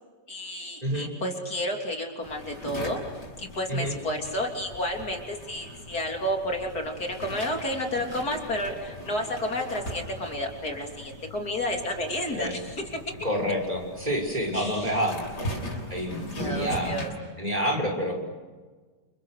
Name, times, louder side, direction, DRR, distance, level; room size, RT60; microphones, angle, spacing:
voice 1, 0.3-3.0 3.4-12.8 14.5-15.0 16.3-17.1, left 1 dB, 65° left, 2 dB, 3.8 m, -31 dB
sound 1, 2.2-17.1, equal, 80° left, 8.1 m, -39 dB
voice 2, 13.2-15.2 15.9-17.0 17.4-18.1, equal, 20° right, 2 dB, 6.5 m, -28 dB
30.0 x 29.0 x 6.7 m, 1.4 s
omnidirectional pair, 1.8 m